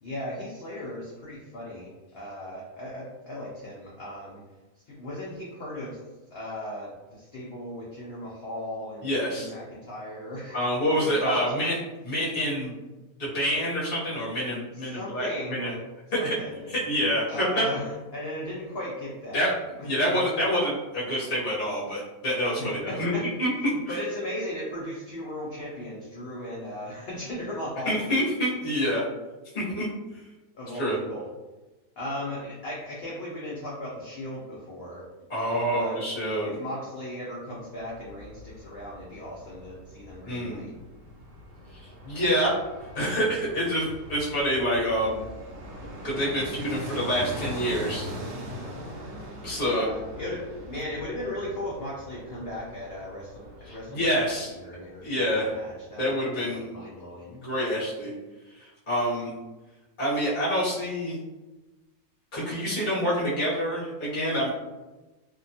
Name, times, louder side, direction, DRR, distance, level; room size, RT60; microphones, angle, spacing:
voice 1, 0.0-4.4 4.9-6.0 6.3-11.6 12.4-12.5 14.8-15.8 16.2-16.7 17.3-19.5 19.8-20.2 22.6-23.3 23.9-27.9 30.5-31.3 32.0-35.0 35.5-36.0 36.4-40.7 49.6-57.4, left 1 dB, 85° left, -5 dB, 0.5 m, -37 dB
voice 2, 9.0-9.5 10.5-11.8 12.0-12.8 13.2-15.7 16.1-16.2 16.7-17.7 19.3-19.5 19.8-23.9 27.8-29.0 29.5-29.9 30.7-31.0 35.3-36.6 40.2-40.7 42.0-42.5 42.9-45.3 46.0-48.0 49.4-49.9 53.7-54.5 55.0-55.5 56.0-56.6 57.3-58.1 58.6-59.3 60.0-61.2 62.3-64.5, equal, 40° left, -8 dB, 0.8 m, -27 dB
Fixed-wing aircraft airplane, 37.8-54.7 55.0-55.1, equal, 75° right, 1.1 m, -41 dB
2.7 x 2.2 x 2.6 m, 1.1 s
omnidirectional pair, 1.7 m